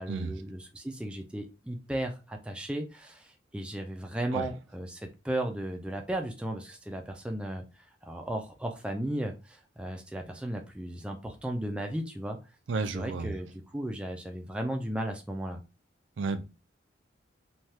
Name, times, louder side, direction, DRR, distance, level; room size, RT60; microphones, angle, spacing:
voice 1, 0.0-12.4 12.9-15.6, right 1 dB, 5° right, 0.3 m, -35 dB
voice 2, 12.7-13.3 16.2-16.4, right 4 dB, 75° right, 0.4 m, -31 dB
3.2 x 2.3 x 2.7 m
head